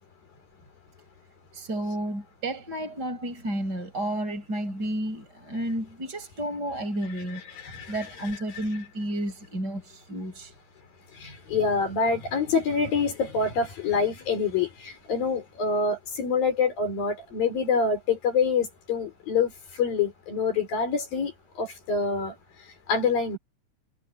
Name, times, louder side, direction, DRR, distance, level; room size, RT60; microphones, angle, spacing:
voice 1, 1.5-7.4 7.9-10.5, right 1 dB, 25° right, 6.0 m, -31 dB
voice 2, 7.6-8.0 11.1-22.4 22.9-23.4, left 5 dB, 80° left, 6.6 m, -26 dB
omnidirectional pair, 4.0 m